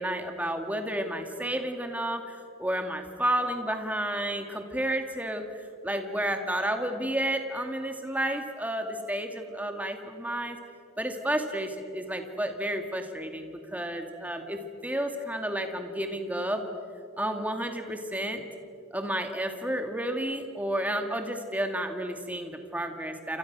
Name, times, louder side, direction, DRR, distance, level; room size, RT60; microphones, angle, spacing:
voice 1, 0.0-10.6 11.0-16.6 17.2-18.4 18.9-23.4, right 1 dB, 10° right, 5 dB, 2.2 m, -31 dB
29.5 x 27.5 x 6.2 m, 2.4 s
head